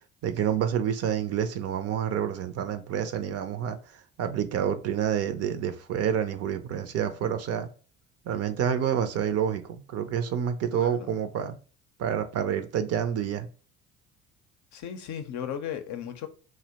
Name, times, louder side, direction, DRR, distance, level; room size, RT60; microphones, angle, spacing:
voice 1, 0.2-3.8 4.2-7.7 8.3-11.6 12.0-13.5, right 9 dB, 45° right, 0.5 m, -28 dB
voice 2, 10.7-11.1 14.7-16.3, left 9 dB, 55° left, 0.6 m, -35 dB
2.7 x 2.1 x 3.9 m
hypercardioid pair, 60°, 36 cm